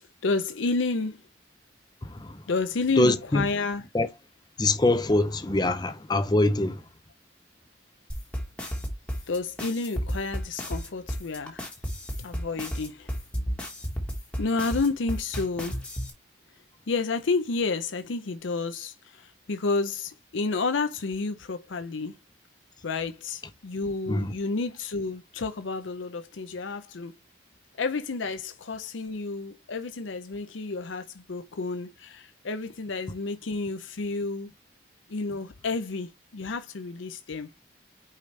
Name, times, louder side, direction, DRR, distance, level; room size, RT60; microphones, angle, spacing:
voice 1, 0.2-1.2 2.5-3.8 9.3-11.6 12.2-13.1 14.4-15.8 16.9-22.1 22.8-27.1 27.8-34.5 35.1-37.5, left 3 dB, 80° left, 0.6 m, -30 dB
voice 2, 2.0-2.4 3.0-3.4 3.9-4.1 4.6-6.8 24.1-24.3, left 2 dB, 20° left, 0.6 m, -24 dB
sound 1, 8.1-16.1, equal, 5° left, 1.6 m, -32 dB
6.5 x 5.1 x 3.2 m
head